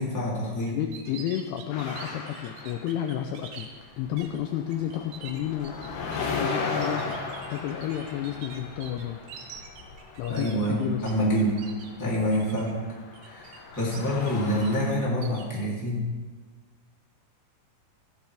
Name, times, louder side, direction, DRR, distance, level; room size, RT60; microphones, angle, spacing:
voice 1, 0.0-0.8 10.3-11.6 12.0-12.8 13.2-16.0, equal, 5° left, -6 dB, 1.9 m, -27 dB
voice 2, 0.7-3.7 4.0-5.8 6.1-7.2 7.5-9.2 10.2-11.1 12.1-12.2, left 11 dB, 85° left, 5 dB, 2.4 m, -31 dB
sound 1, 0.7-3.7 4.2-4.4 4.7-11.1 11.4-11.9 12.3-12.7 13.1-14.3 14.6-15.6, right 7 dB, 75° right, 3.3 m, -46 dB
sound 2, 1.7-3.5 3.8-14.9, left 4 dB, 65° left, 2.5 m, -37 dB
15.0 x 10.5 x 3.5 m, 1.4 s
omnidirectional pair, 5.2 m